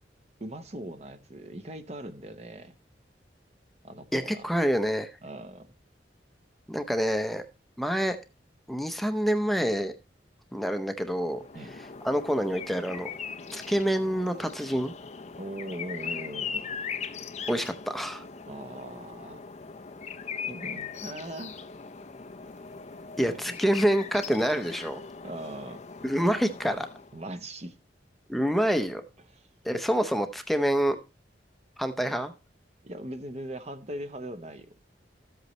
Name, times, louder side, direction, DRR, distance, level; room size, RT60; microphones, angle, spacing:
voice 1, 0.4-2.8 3.8-4.5 5.2-5.7 11.5-11.8 15.4-16.7 18.5-19.5 20.5-21.6 23.3-23.6 25.2-25.8 27.1-27.8 29.3-29.5 32.8-34.7, right 1 dB, 35° right, 9 dB, 0.8 m, -40 dB
voice 2, 4.1-5.1 6.7-7.4 7.8-8.2 8.7-9.9 10.5-11.4 12.0-13.1 13.5-14.9 17.5-18.2 23.2-25.0 26.0-26.9 28.3-29.0 29.6-31.0 31.8-32.3, equal, ahead, 7 dB, 0.7 m, -27 dB
sound 1, 11.3-27.2, left 6 dB, 40° left, 0.6 m, -40 dB
13.0 x 8.1 x 3.1 m, 0.30 s
head